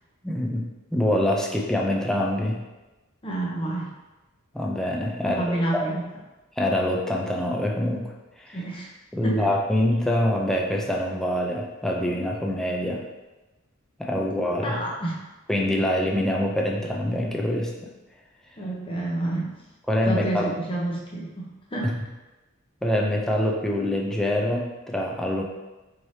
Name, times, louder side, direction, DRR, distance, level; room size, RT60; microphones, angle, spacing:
voice 1, 0.2-2.6 4.5-5.8 6.6-8.1 8.4-8.6 9.1-13.0 14.0-14.8 15.5-17.7 19.9-20.5 21.8-21.9 22.8-25.4, left 1 dB, ahead, -1 dB, 0.4 m, -25 dB
voice 2, 3.2-3.9 5.2-6.0 8.5-8.9 9.2-9.5 14.6-15.2 18.6-19.5 20.0-21.9, right 1 dB, 25° left, -3 dB, 0.8 m, -29 dB
4.6 x 3.2 x 2.7 m, 1.1 s
head